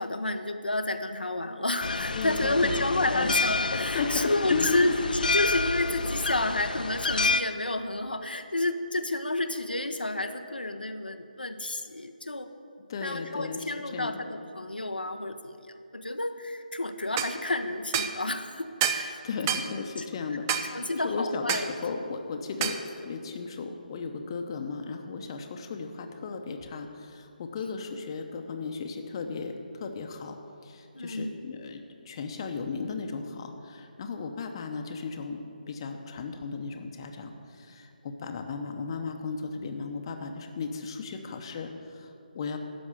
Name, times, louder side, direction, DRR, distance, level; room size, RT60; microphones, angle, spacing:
voice 1, 0.0-12.5 13.0-15.6 15.9-19.2 20.0-20.1 20.7-21.7 22.6-22.7 30.9-31.3, left 2 dB, 90° left, 6 dB, 0.8 m, -30 dB
sound 1, 1.8-7.4, left 3 dB, 65° left, 0.6 m, -29 dB
voice 2, 2.1-2.8 3.1-3.3 3.9-4.9 12.9-14.2 19.2-30.4 30.6-42.6, left 4 dB, 30° left, 5 dB, 0.9 m, -35 dB
sound 2, 17.2-17.3 17.9-18.2 18.8-19.1 19.5-19.7 20.5-20.7 21.5-21.7 22.6-22.8, right 9 dB, 20° right, 0.4 m, -28 dB
13.0 x 5.3 x 8.2 m, 2.5 s
figure-of-eight pair, 155°, 5 cm